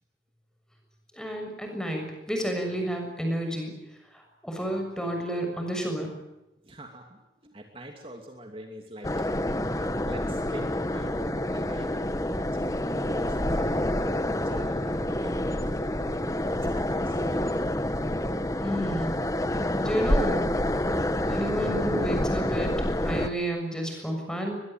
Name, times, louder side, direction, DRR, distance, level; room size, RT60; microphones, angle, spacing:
voice 1, 1.1-3.7 4.1-6.1 18.6-19.2 19.7-20.5 21.2-22.7 23.0-24.6, right 1 dB, 5° left, 3 dB, 6.7 m, -30 dB
voice 2, 6.6-9.3 9.6-11.9 12.2-16.3 16.7-17.4, right 1 dB, 30° right, 3 dB, 2.7 m, -45 dB
sound 1, 9.0-23.3, left 1 dB, 20° left, 1.3 m, -28 dB
23.0 x 22.0 x 9.2 m, 0.95 s
head